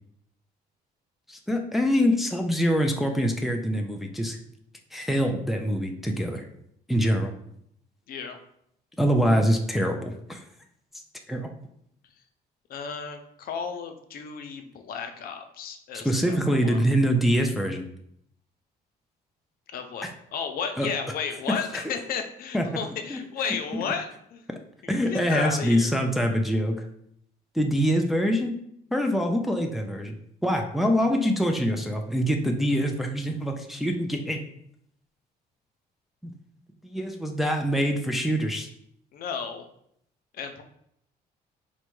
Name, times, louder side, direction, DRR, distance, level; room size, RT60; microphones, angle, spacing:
voice 1, 1.3-4.4 4.9-6.5 6.9-7.3 9.0-10.4 11.3-11.5 15.9-17.8 20.0-20.1 20.8-20.9 21.7-21.8 22.5-22.8 23.1-23.2 24.9-26.8 27.5-28.5 28.9-30.1 30.4-34.4 36.2-36.3 36.8-38.7, equal, ahead, 2 dB, 0.4 m, -24 dB
voice 2, 8.1-8.4 12.7-16.1 16.5-16.8 19.7-24.5 25.1-26.0 39.1-39.7 40.3-40.6, left 6 dB, 60° left, 6 dB, 0.6 m, -33 dB
4.1 x 2.2 x 4.6 m, 0.72 s
cardioid pair, 110°, 17 cm